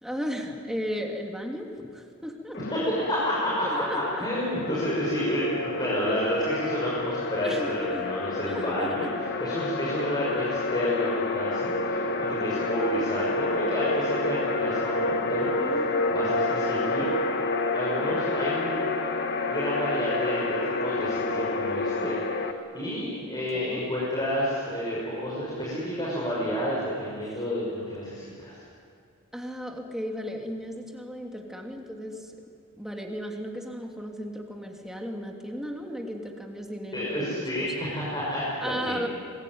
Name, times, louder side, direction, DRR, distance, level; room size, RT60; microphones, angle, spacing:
voice 1, 0.0-2.6 3.6-4.3 7.3-8.1 8.4-9.1 15.6-16.4 18.0-18.4 23.5-23.9 27.2-27.4 29.3-32.4 32.8-37.7 38.6-39.1, equal, ahead, 1 dB, 2.9 m, -35 dB
sound 1, 2.5-22.5, left 3 dB, 50° left, 1.9 m, -29 dB
voice 2, 2.6-9.1 9.4-17.1 17.7-18.9 19.4-28.6 36.9-39.1, equal, 20° left, -6 dB, 6.2 m, -30 dB
27.0 x 21.5 x 9.6 m, 2.3 s
head